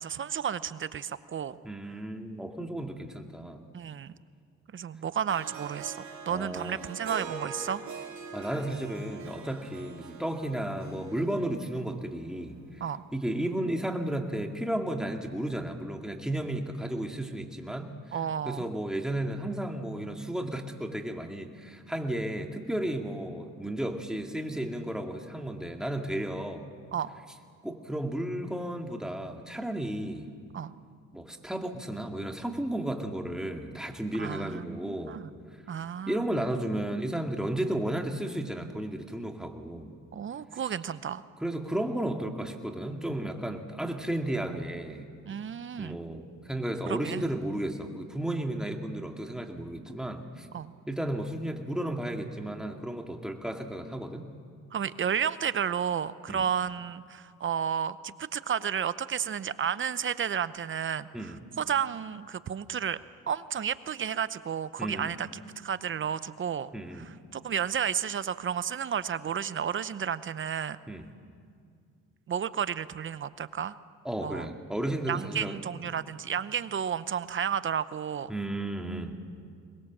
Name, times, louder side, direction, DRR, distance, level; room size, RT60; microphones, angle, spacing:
voice 1, 0.0-1.6 3.7-4.1 4.7-6.0 6.3-7.8 12.8-13.0 18.1-18.6 26.9-27.1 30.5-30.7 34.2-35.3 35.7-36.2 40.1-41.2 45.3-46.0 46.9-47.2 50.5-50.7 54.7-63.0 63.3-65.3 65.6-66.7 67.3-70.8 72.3-73.8 74.2-74.5 75.1-78.3, right 8 dB, 40° right, 15 dB, 0.7 m, -32 dB
voice 2, 1.6-3.6 6.3-6.8 8.3-12.6 13.1-18.2 18.4-26.7 27.6-30.2 31.1-35.2 36.1-39.9 40.5-40.7 41.4-45.1 45.8-50.5 50.9-54.2 56.3-56.4 61.1-61.4 64.8-65.2 66.7-67.1 70.9-71.1 74.0-75.6 78.3-79.1, right 1 dB, ahead, 3 dB, 2.1 m, -33 dB
Harp, 5.3-12.4, right 6 dB, 70° right, 3.0 m, -43 dB
22.5 x 20.5 x 7.4 m, 2.2 s
cardioid pair, 90°, 30 cm